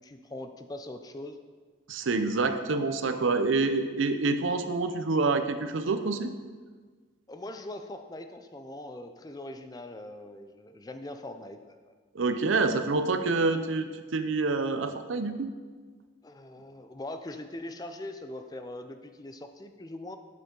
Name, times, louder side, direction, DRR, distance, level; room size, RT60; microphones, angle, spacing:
voice 1, 0.0-1.4 7.3-11.9 16.2-20.2, left 1 dB, 20° left, 7 dB, 0.4 m, -41 dB
voice 2, 1.9-6.3 12.1-15.5, right 3 dB, 85° right, 9 dB, 0.6 m, -27 dB
8.3 x 6.9 x 3.8 m, 1.5 s
head